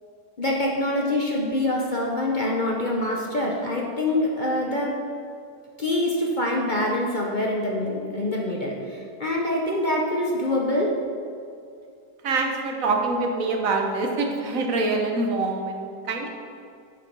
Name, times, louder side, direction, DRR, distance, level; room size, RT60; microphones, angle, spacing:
voice 1, 0.4-4.9 5.8-10.9, left 1 dB, 35° left, -1 dB, 0.8 m, -25 dB
voice 2, 12.2-16.3, right 3 dB, 55° right, 2 dB, 1.4 m, -25 dB
7.8 x 7.4 x 5.3 m, 2.4 s
omnidirectional pair, 1.8 m